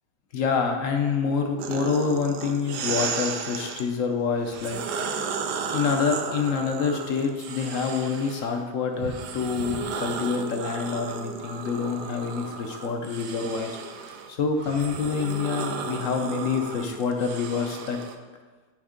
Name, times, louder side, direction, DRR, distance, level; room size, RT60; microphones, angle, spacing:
voice 1, 0.3-5.2 5.7-13.8 14.3-18.0, left 5 dB, 60° left, 4 dB, 0.9 m, -27 dB
sound 1, 1.6-3.8 4.4-8.5 9.0-18.1, right 6 dB, 90° right, 1.2 m, -34 dB
8.8 x 3.5 x 5.0 m, 1.3 s
omnidirectional pair, 1.7 m